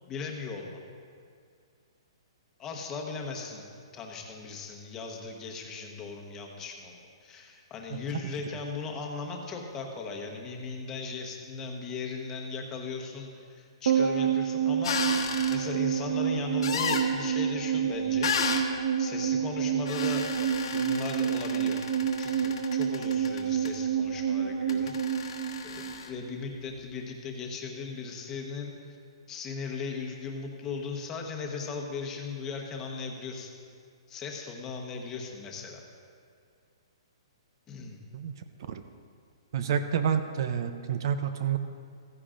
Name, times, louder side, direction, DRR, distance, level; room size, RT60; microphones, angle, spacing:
voice 1, 0.1-0.8 2.6-3.7 3.9-15.2 15.5-18.3 19.0-20.3 20.7-21.8 22.2-28.7 29.3-33.5 34.1-35.8 37.7-38.0, left 4 dB, 15° left, 1 dB, 1.1 m, -38 dB
sound 1, 13.9-26.4 26.6-26.7, right 8 dB, 70° right, 1.2 m, -28 dB
sound 2, 14.8-15.6 16.6-17.1 18.2-18.7 19.9-23.7 24.7-26.1, left 7 dB, 65° left, 1.2 m, -33 dB
voice 2, 39.5-41.6, right 8 dB, 50° right, 10 dB, 0.5 m, -29 dB
15.0 x 14.5 x 2.5 m, 2.3 s
hypercardioid pair, 165°, 3 cm